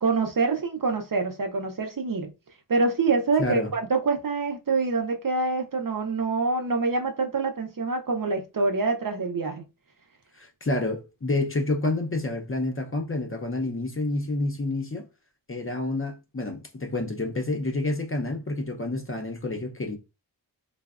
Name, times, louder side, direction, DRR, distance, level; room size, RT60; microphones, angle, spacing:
voice 1, 0.0-2.3 2.7-9.6, right 4 dB, 50° right, 0.5 m, -26 dB
voice 2, 3.4-3.7 10.3-15.0 15.5-20.0, left 2 dB, 30° left, 0.5 m, -29 dB
3.3 x 2.0 x 2.3 m
wide cardioid pair, 75°, 45 cm